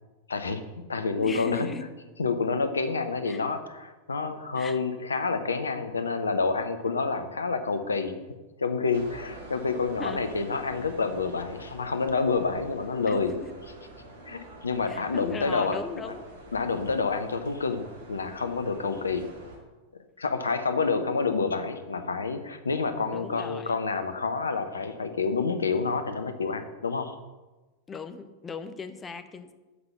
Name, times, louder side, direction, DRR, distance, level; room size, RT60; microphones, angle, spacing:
voice 1, 0.3-1.7 2.2-8.2 8.6-13.3 14.3-15.8 16.5-19.3 19.9-27.1, left 4 dB, 75° left, 9 dB, 0.8 m, -28 dB
voice 2, 1.2-1.9 3.3-3.4 4.6-4.8 10.0-10.2 13.1-13.5 14.8-16.3 23.1-23.7 27.9-29.5, left 5 dB, 20° left, 10 dB, 0.8 m, -38 dB
sound 1, 8.9-19.6, right 1 dB, 65° right, 2.0 m, -46 dB
7.9 x 5.7 x 7.0 m, 1.2 s
figure-of-eight pair, 90°, 0 cm